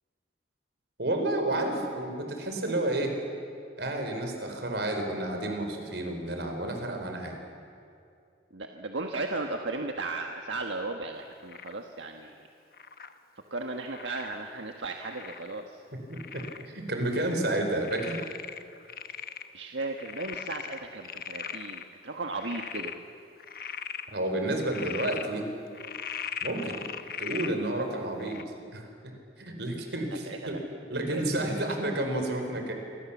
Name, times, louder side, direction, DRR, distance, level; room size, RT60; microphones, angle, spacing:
voice 1, 1.0-3.2 3.8-7.3 16.1-18.2 24.1-25.5 26.4-26.8 27.2-28.4 28.7-29.1 29.4-30.6 30.9-32.7, right 1 dB, 65° right, 4 dB, 4.5 m, -30 dB
voice 2, 8.5-12.4 13.5-15.8 19.5-23.0 27.9-28.0 30.3-30.6 30.9-31.6, right 3 dB, 90° right, 3 dB, 1.5 m, -36 dB
Frog, 11.5-11.8 12.7-13.1 13.9-14.3 15.1-15.6 16.1-16.7 17.1-17.2 17.8-19.5 19.8-21.8 22.3-23.0 23.4-24.1 24.6-25.3 25.7-27.5 28.2-28.4, left 8 dB, 50° left, 1.1 m, -39 dB
27.5 x 24.5 x 7.3 m, 2.4 s
head